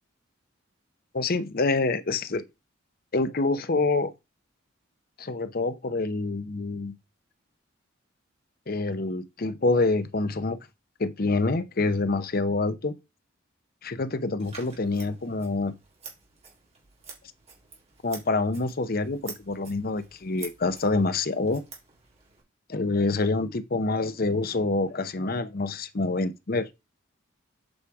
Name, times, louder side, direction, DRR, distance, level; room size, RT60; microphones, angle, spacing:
voice 1, 1.1-2.4 3.1-4.1 5.2-6.9 8.7-10.6 11.0-12.9 13.8-15.7 18.0-21.6 22.7-26.7, left 3 dB, 45° left, 0.7 m, -26 dB
Scissors, 14.4-22.4, right 5 dB, 30° right, 3.7 m, -48 dB
8.7 x 5.0 x 4.7 m
head